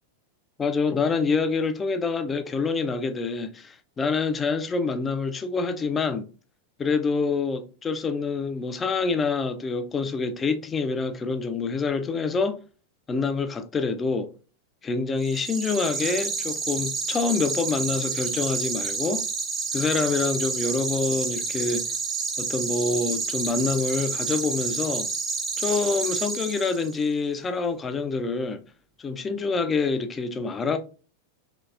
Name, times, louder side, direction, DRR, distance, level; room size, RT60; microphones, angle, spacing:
voice 1, 0.6-6.3 6.8-12.6 13.1-14.3 14.8-19.2 19.7-21.9 22.4-25.1 25.6-28.6 29.0-30.8, left 4 dB, 20° left, 0.3 m, -26 dB
sound 1, 15.2-27.0, right 4 dB, 20° right, 0.6 m, -29 dB
3.1 x 2.8 x 2.3 m
figure-of-eight pair, 90°, 0 cm